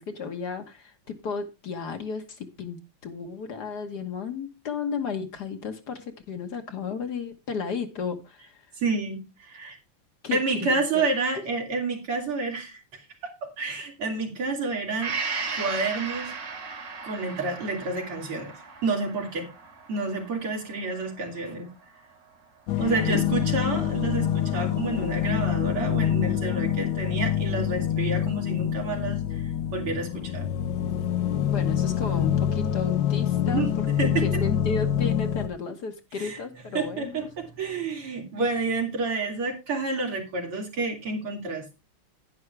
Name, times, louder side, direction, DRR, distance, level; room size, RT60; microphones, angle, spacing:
voice 1, 0.0-8.7 10.2-11.1 22.7-23.2 31.5-37.2, left 5 dB, 55° left, 6 dB, 1.6 m, -34 dB
voice 2, 8.8-9.8 10.3-15.1 15.5-16.3 17.0-18.5 18.8-19.5 19.9-21.7 22.8-29.4 29.7-30.5 33.5-33.7 34.0-34.2 36.2-36.4 36.7-41.8, right 3 dB, 85° right, 1 dB, 3.8 m, -29 dB
Gong, 15.0-22.7 23.0-23.1, right 4 dB, 45° right, 1.8 m, -37 dB
sound 1, 22.7-35.5, left 10 dB, 70° left, 1.6 m, -26 dB
11.0 x 10.0 x 3.3 m, 0.26 s
omnidirectional pair, 2.3 m